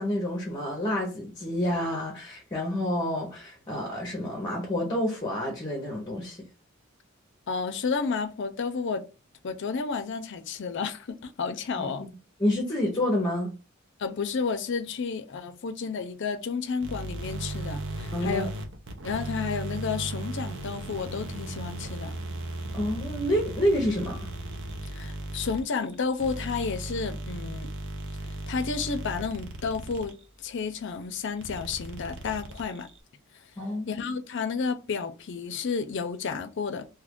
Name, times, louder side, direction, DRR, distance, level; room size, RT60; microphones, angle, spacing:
voice 1, 0.0-6.4 11.8-11.9 12.4-13.5 18.1-18.4 22.7-24.3 33.6-34.0, left 1 dB, 20° left, 0.7 m, -28 dB
voice 2, 7.5-9.0 9.4-12.1 14.0-18.5 19.0-22.2 24.9-27.7 28.5-32.9 33.9-36.9, left 5 dB, 55° left, 0.5 m, -31 dB
sound 1, 16.8-30.2 31.4-33.0, right 2 dB, 60° right, 0.7 m, -36 dB
2.8 x 2.4 x 3.6 m
head